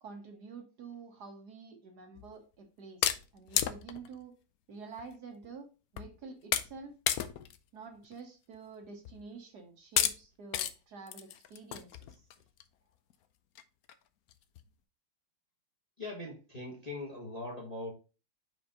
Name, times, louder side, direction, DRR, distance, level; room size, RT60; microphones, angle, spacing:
voice 1, 0.0-4.3 4.7-7.0 7.7-12.3, right 4 dB, 60° right, 4 dB, 1.4 m, -48 dB
sound 1, 2.2-2.3 3.0-4.1 5.0-5.1 5.4-5.5 6.0-6.2 6.5-6.8 7.1-7.6 8.0-8.1 9.1-9.2 10.0-10.2 10.5-10.7 11.1-12.6 13.1-13.2 13.6-13.7 13.9-14.0 14.3-14.6, left 11 dB, 85° left, 0.8 m, -32 dB
voice 2, 16.0-17.9, left 2 dB, 25° left, -2 dB, 1.2 m, -41 dB
5.2 x 4.9 x 3.8 m, 0.32 s
omnidirectional pair, 2.2 m